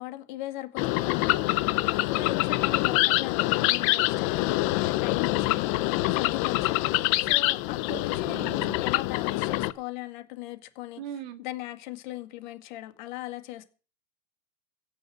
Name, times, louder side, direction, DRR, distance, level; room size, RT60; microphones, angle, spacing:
voice 1, 0.0-11.0 11.4-13.6, left 16 dB, 50° left, 2.1 m, -39 dB
sound 1, 0.8-9.7, left 19 dB, 35° left, 0.6 m, -25 dB
voice 2, 7.9-8.8 11.0-11.4, right 9 dB, 50° right, 2.2 m, -40 dB
16.5 x 6.6 x 7.8 m
supercardioid pair, 170°, 30 cm